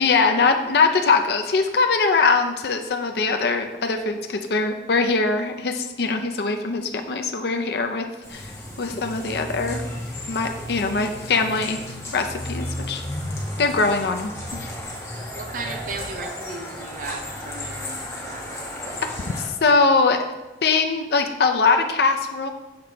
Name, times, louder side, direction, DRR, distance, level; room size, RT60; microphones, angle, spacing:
voice 1, 0.0-8.5 8.8-9.8 10.3-11.8 12.1-13.0 13.6-14.7 19.4-20.3 20.6-22.5, left 4 dB, 60° left, 5 dB, 0.5 m, -22 dB
sound 1, 8.2-19.5, left 1 dB, 15° left, 1.3 m, -34 dB
voice 2, 15.3-18.7, right 3 dB, 50° right, 6 dB, 0.6 m, -36 dB
6.7 x 4.5 x 3.9 m, 1.0 s
head